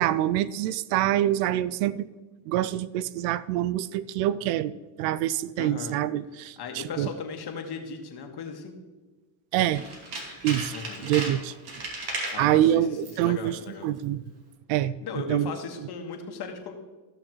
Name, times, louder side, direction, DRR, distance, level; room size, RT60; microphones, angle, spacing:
voice 1, 0.0-2.1 2.5-7.1 9.5-9.8 10.4-10.7 11.0-11.5 12.4-14.2 14.7-15.5, right 12 dB, 85° right, 18 dB, 0.5 m, -26 dB
voice 2, 5.6-6.0 6.6-8.8 10.7-11.1 12.3-12.9 13.2-13.9 15.0-16.8, left 5 dB, 50° left, 3 dB, 1.7 m, -37 dB
Tools, 9.7-12.5 13.0-13.3 13.6-13.7, right 2 dB, 50° right, 2.7 m, -35 dB
15.5 x 6.3 x 3.1 m, 1.3 s
supercardioid pair, 90°, 49 cm